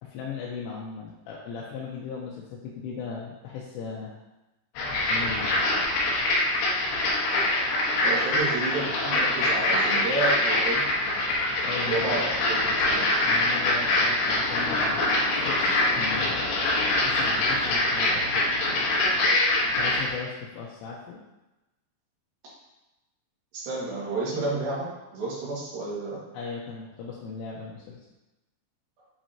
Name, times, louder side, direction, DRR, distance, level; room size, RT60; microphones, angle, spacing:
voice 1, 0.0-4.1 5.1-5.7 11.7-12.3 13.1-16.5 17.0-18.5 19.8-21.2 26.3-28.1, left 5 dB, 85° left, -4 dB, 3.4 m, -37 dB
sound 1, 4.8-20.1, left 2 dB, 70° left, 3.4 m, -24 dB
voice 2, 8.0-10.8 11.9-13.1 23.5-24.9 25.1-26.2, right 3 dB, 55° right, -6 dB, 3.2 m, -30 dB
8.6 x 6.0 x 2.9 m, 1.0 s
omnidirectional pair, 5.6 m